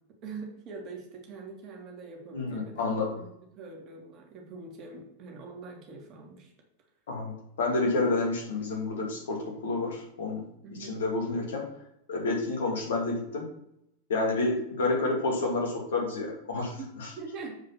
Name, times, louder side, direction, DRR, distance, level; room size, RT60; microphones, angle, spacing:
voice 1, 0.2-3.3 3.6-6.5 10.6-11.0 16.8-16.9 17.2-17.6, right 4 dB, 35° right, 1 dB, 2.2 m, -43 dB
voice 2, 2.3-3.2 7.1-10.4 10.7-11.6 12.1-13.5 14.1-17.1, left 3 dB, 60° left, 0 dB, 2.5 m, -29 dB
7.8 x 4.8 x 5.8 m, 0.77 s
figure-of-eight pair, 90°, 0 cm